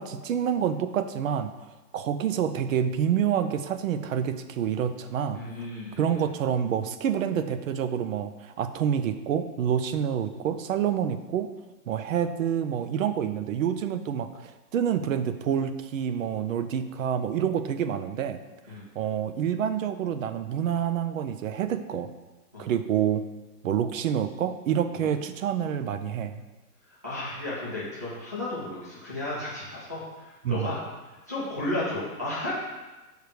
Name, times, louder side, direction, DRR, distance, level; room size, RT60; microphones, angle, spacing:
voice 1, 0.0-1.5 1.9-5.4 6.0-11.5 11.9-18.4 19.0-22.1 22.6-23.3 23.6-26.4 30.4-30.7, right 8 dB, 55° right, 10 dB, 0.5 m, -27 dB
voice 2, 5.3-6.2 18.7-18.8 22.5-22.7 25.0-25.1 26.9-30.8 31.3-32.5, left 2 dB, 10° left, -8 dB, 0.4 m, -34 dB
6.5 x 3.2 x 5.0 m, 1.2 s
hypercardioid pair, 165°, 48 cm